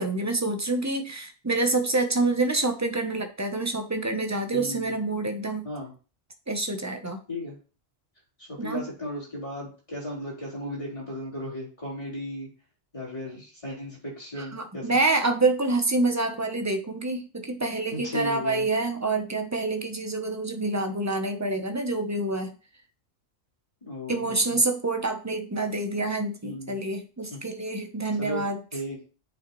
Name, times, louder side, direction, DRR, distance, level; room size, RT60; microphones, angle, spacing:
voice 1, 0.0-5.7 6.5-7.2 8.6-8.8 14.5-22.6 24.1-28.6, right 2 dB, 15° right, 5 dB, 0.7 m, -27 dB
voice 2, 4.5-4.9 5.6-5.9 7.3-7.6 8.4-12.5 12.9-14.9 17.9-18.6 23.8-24.4 26.4-26.8 27.3-27.4 28.2-28.4 28.7-29.0, equal, 25° left, -6 dB, 4.2 m, -35 dB
7.9 x 6.4 x 3.1 m, 0.36 s
omnidirectional pair, 1.3 m